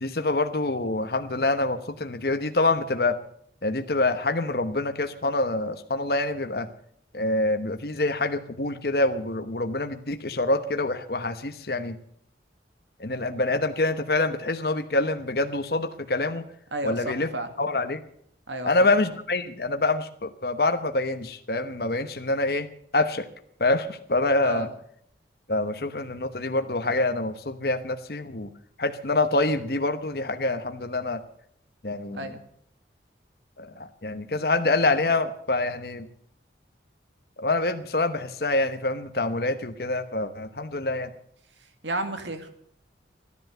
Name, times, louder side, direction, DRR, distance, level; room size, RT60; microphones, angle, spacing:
voice 1, 0.0-3.2 3.6-6.7 7.1-12.0 13.0-16.4 16.8-17.3 17.6-18.0 18.6-22.7 22.9-23.3 23.6-24.7 25.5-28.5 28.8-31.2 31.8-32.3 33.6-36.1 37.4-41.1, left 2 dB, 55° left, 8 dB, 1.0 m, -26 dB
voice 2, 16.7-17.5 18.5-18.9 24.4-24.7 32.1-32.4 41.8-42.5, right 2 dB, 85° right, 8 dB, 2.0 m, -32 dB
14.5 x 11.0 x 7.8 m, 0.68 s
head